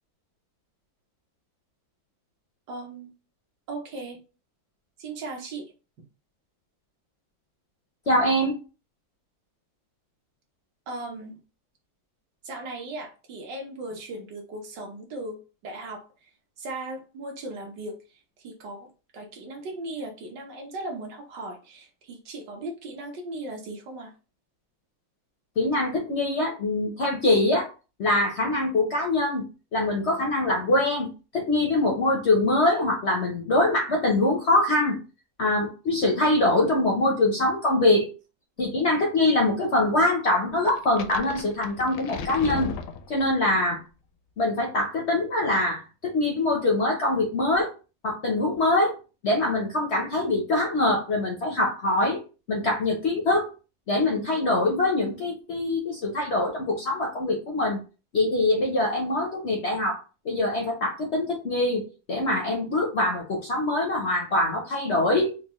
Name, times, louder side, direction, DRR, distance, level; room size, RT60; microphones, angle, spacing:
voice 1, 2.7-3.1 3.7-4.2 5.0-5.7 10.9-11.4 12.4-16.3 16.6-18.9 19.1-24.1, right 2 dB, 65° right, 1 dB, 1.5 m, -37 dB
voice 2, 8.1-8.5 25.6-27.7 28.0-29.4 29.7-35.0 35.4-38.1 38.6-42.7 43.1-43.8 44.4-47.7 48.0-49.0 49.2-52.2 52.5-53.5 53.9-57.8 58.1-60.0 60.2-65.4, left 2 dB, 65° left, 0 dB, 0.7 m, -24 dB
sound 1, 40.7-43.5, left 6 dB, 80° left, 1.3 m, -36 dB
4.3 x 2.3 x 3.0 m, 0.33 s
omnidirectional pair, 2.1 m